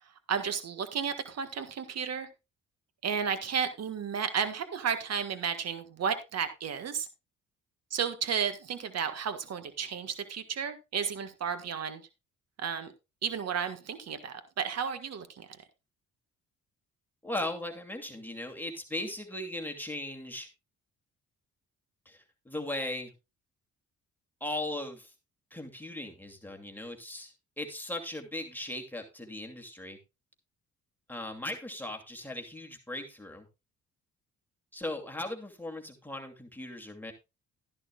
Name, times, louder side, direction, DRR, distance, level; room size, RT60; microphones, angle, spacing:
voice 1, 0.3-2.3 3.0-7.1 7.9-12.0 12.6-12.9 13.2-15.5, right 7 dB, 55° right, 1.6 m, -33 dB
voice 2, 17.2-20.5 22.1-23.1 24.4-25.1 25.5-30.0 31.1-33.5 34.7-37.1, left 1 dB, 5° left, 2.5 m, -38 dB
13.0 x 11.0 x 2.4 m
cardioid pair, 90°, 30 cm